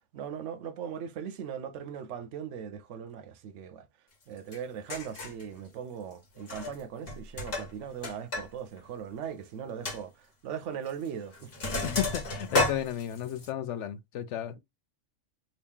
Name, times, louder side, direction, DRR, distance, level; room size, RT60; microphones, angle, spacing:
voice 1, 0.1-3.9 4.3-11.5, right 8 dB, 70° right, 0.9 m, -39 dB
Sink (filling or washing), 4.5-4.6 4.9-5.4 6.4-6.8 7.1-8.5 8.8-8.9 9.3-9.4 9.9-10.0 10.9-11.1 11.3-13.5, left 2 dB, 50° left, 1.2 m, -32 dB
voice 2, 11.8-14.6, left 10 dB, 70° left, 0.8 m, -33 dB
2.9 x 2.8 x 3.5 m
omnidirectional pair, 1.3 m